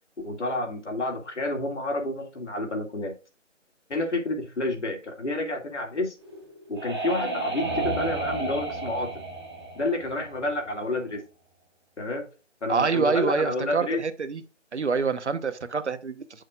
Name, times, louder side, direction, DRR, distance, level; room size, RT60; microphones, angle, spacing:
voice 1, 0.2-3.2 3.9-6.2 6.7-9.1 9.8-11.2 12.0-12.3 12.6-14.0, left 2 dB, 65° left, 2.4 m, -29 dB
sound 1, 6.2-10.8, right 3 dB, 20° right, 1.0 m, -32 dB
voice 2, 12.7-14.4 14.7-16.2, right 5 dB, 65° right, 0.9 m, -26 dB
8.9 x 6.4 x 2.4 m
figure-of-eight pair, 175°, 37 cm